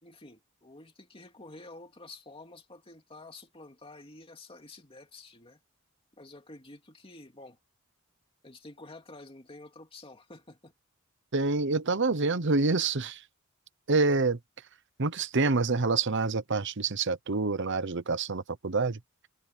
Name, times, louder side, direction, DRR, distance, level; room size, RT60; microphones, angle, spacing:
voice 1, 0.0-5.6 6.1-7.6 8.4-10.7, left 2 dB, 25° left, 2.6 m, -49 dB
voice 2, 11.3-13.2 13.9-14.4 15.0-19.0, right 3 dB, 60° right, 1.0 m, -27 dB
head